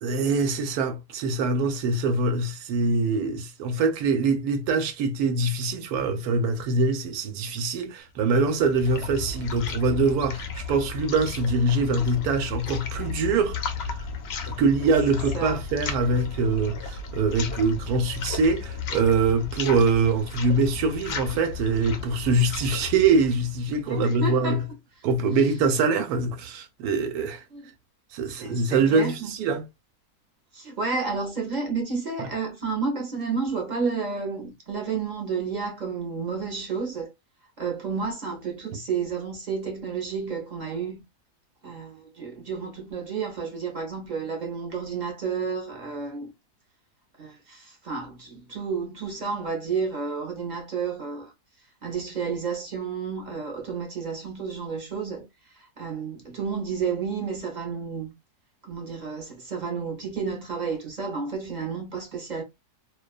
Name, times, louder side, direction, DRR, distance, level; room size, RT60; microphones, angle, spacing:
voice 1, 0.0-14.1 14.4-24.6 25.0-27.4 28.1-29.7 32.2-32.3, right 3 dB, 85° right, 1.1 m, -24 dB
sound 1, 8.3-24.3, left 5 dB, 65° left, 0.6 m, -34 dB
voice 2, 23.9-24.6 27.5-27.6 28.3-29.3 30.5-37.1 37.6-41.0 41.6-46.3 47.2-51.3 51.8-55.3 55.5-58.1 58.6-62.4, right 5 dB, 40° right, 0.7 m, -31 dB
2.5 x 2.3 x 2.3 m
omnidirectional pair, 1.6 m